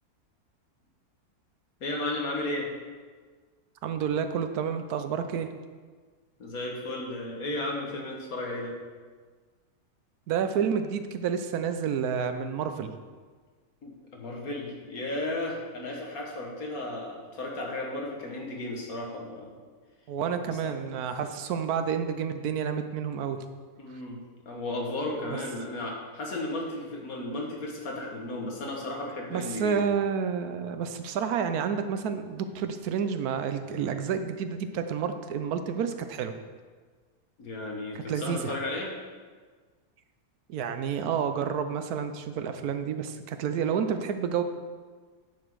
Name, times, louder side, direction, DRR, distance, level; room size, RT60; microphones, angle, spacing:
voice 1, 1.8-2.7 6.4-8.8 13.8-19.5 20.5-20.7 23.8-24.2 24.5-29.8 37.4-38.9, left 2 dB, 65° left, 0 dB, 1.8 m, -34 dB
voice 2, 3.8-5.5 10.3-12.9 20.1-23.4 29.3-36.3 38.1-38.5 40.5-44.4, right 7 dB, 75° right, 8 dB, 1.1 m, -29 dB
10.0 x 6.0 x 4.6 m, 1.5 s
omnidirectional pair, 1.6 m